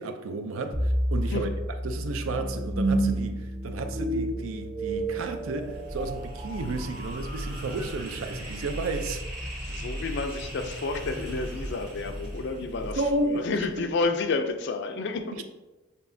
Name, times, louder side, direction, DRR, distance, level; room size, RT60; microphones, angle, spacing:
voice 1, 0.0-1.5 1.8-9.2 13.0-13.5 13.8-13.9, right 2 dB, 70° right, 0.4 m, -32 dB
sound 1, 0.7-9.8, right 1 dB, 20° right, 0.6 m, -31 dB
sound 2, 4.9-14.0, equal, 40° right, 1.3 m, -38 dB
voice 2, 9.5-15.4, left 3 dB, 55° left, 0.4 m, -30 dB
6.9 x 2.7 x 2.6 m
head